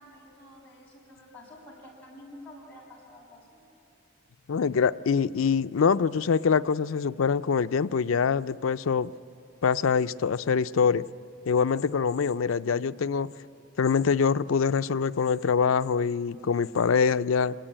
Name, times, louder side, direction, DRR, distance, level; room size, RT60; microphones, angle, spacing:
voice 1, 0.0-3.6, left 1 dB, 10° left, 6.8 m, -49 dB
voice 2, 4.5-9.1 9.6-11.1 11.5-13.3 13.8-17.5, left 6 dB, 80° left, 0.5 m, -24 dB
25.5 x 20.0 x 8.9 m
head